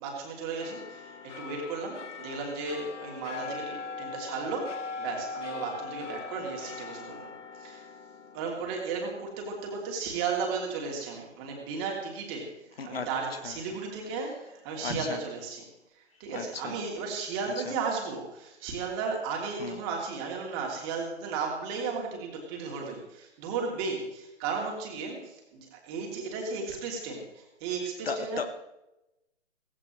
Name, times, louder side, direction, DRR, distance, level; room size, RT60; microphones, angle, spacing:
voice 1, 0.0-7.3 7.6-7.9 8.3-12.5 12.8-15.7 15.9-28.5, right 4 dB, 20° right, 0 dB, 3.0 m, -35 dB
sound 1, 0.6-11.4 11.8-11.9, left 4 dB, 75° left, 1.2 m, -41 dB
voice 2, 14.8-15.2 16.3-16.7 19.6-19.8 28.1-28.5, left 5 dB, 50° left, 10 dB, 1.1 m, -35 dB
17.5 x 16.0 x 3.2 m, 0.92 s
figure-of-eight pair, 145°, 37 cm